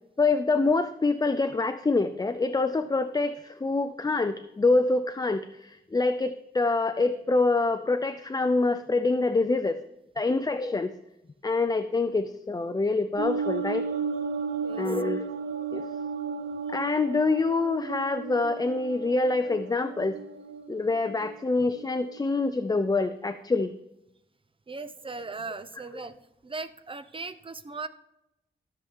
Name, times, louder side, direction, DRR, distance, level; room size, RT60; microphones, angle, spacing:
voice 1, 0.2-9.8 10.2-10.9 11.4-13.8 14.8-15.3 15.7-15.8 16.7-20.2 20.7-23.7, left 3 dB, 20° left, 10 dB, 0.4 m, -26 dB
sound 1, 13.2-22.2, right 5 dB, 60° right, 0.8 m, -34 dB
voice 2, 24.7-26.2 26.4-27.9, right 3 dB, 25° right, 12 dB, 0.6 m, -38 dB
13.5 x 7.0 x 3.6 m, 0.89 s
wide cardioid pair, 140°, 20 cm